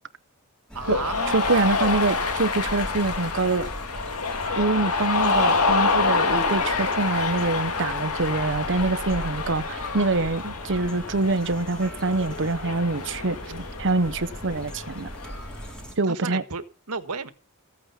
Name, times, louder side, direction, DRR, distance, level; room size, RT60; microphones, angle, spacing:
sound 1, 0.7-16.0, right 1 dB, 5° left, 3.1 m, -39 dB
voice 1, 0.7-1.4 16.1-17.3, right 4 dB, 90° right, 1.6 m, -33 dB
Cheering, 0.8-15.6, left 3 dB, 80° left, 2.0 m, -27 dB
voice 2, 1.3-3.7 4.5-15.1 16.0-16.4, right 3 dB, 55° right, 1.0 m, -25 dB
Male singing, 4.2-8.6 9.3-9.8 10.4-10.7 10.9-11.9, equal, 25° left, 4.2 m, -51 dB
15.0 x 8.7 x 5.8 m
head